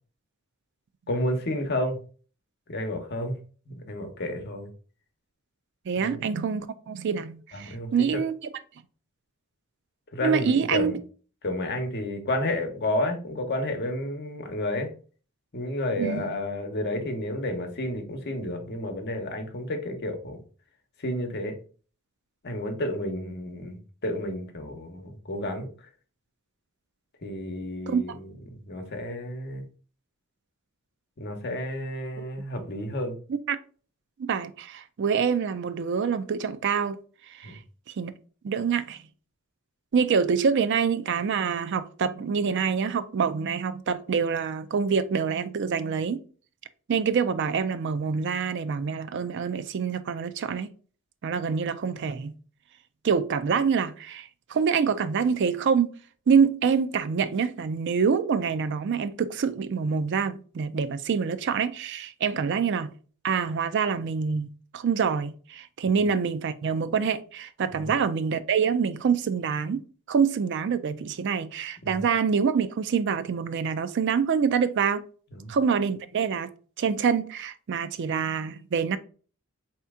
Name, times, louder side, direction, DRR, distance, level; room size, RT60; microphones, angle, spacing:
voice 1, 1.1-2.0 2.7-3.4 3.7-4.7 6.0-6.2 7.5-8.2 10.1-11.0 11.4-14.9 15.5-20.4 21.0-21.5 22.4-25.7 27.2-29.7 31.2-33.2 37.4-37.5 65.9-66.0 67.7-68.0 71.8-72.1 75.3-75.6, left 1 dB, 50° left, 0.9 m, -31 dB
voice 2, 5.9-8.3 10.2-10.9 16.0-16.3 27.9-28.0 33.3-33.6 34.2-37.0 37.3-37.6 38.0-38.1 38.4-39.0 39.9-46.2 46.9-50.7 51.2-52.4 53.0-55.9 56.3-62.9 63.2-69.8 70.1-75.0 75.5-76.5 76.8-79.0, right 6 dB, 55° right, 0.4 m, -26 dB
4.3 x 2.9 x 3.5 m
head